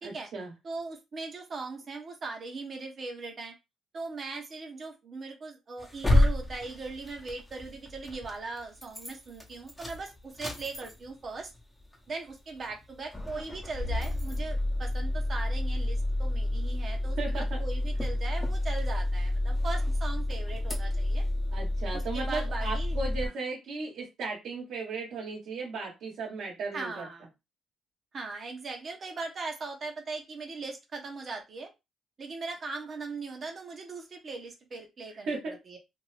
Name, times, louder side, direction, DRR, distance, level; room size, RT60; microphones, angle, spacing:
voice 1, 0.0-0.5 17.2-17.6 21.5-27.0 35.3-35.5, right 3 dB, 75° right, -4 dB, 1.2 m, -36 dB
voice 2, 0.6-3.5 3.9-11.5 12.1-21.2 21.9-23.3 26.7-27.3 28.1-31.7 32.2-35.8, right 3 dB, 45° right, 2 dB, 0.9 m, -39 dB
sound 1, 5.8-8.4 8.7-9.1 9.4-11.2 11.6-11.7 11.9-12.0 12.6-12.9 13.1-23.3, left 1 dB, 10° left, 1.0 m, -29 dB
2.7 x 2.5 x 3.2 m, 0.23 s
cardioid pair, 90°, 0 cm